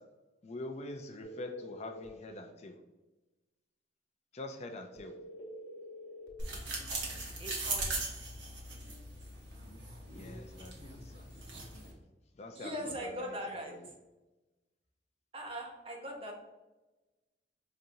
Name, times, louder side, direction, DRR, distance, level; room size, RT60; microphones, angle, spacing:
voice 1, 0.4-2.8 4.3-5.1 10.1-11.3 12.4-12.7 13.0-13.1 13.7-13.9, left 2 dB, 40° left, 5 dB, 0.4 m, -44 dB
sound 1, 1.2-2.1 5.0-6.3, equal, 75° left, 0.9 m, -47 dB
sound 2, 6.4-11.9, right 2 dB, 80° right, 1.1 m, -39 dB
voice 2, 7.4-8.0 11.3-11.6 12.5-13.9 15.3-16.3, equal, 30° right, 1 dB, 0.7 m, -41 dB
5.0 x 2.8 x 2.6 m, 1.1 s
head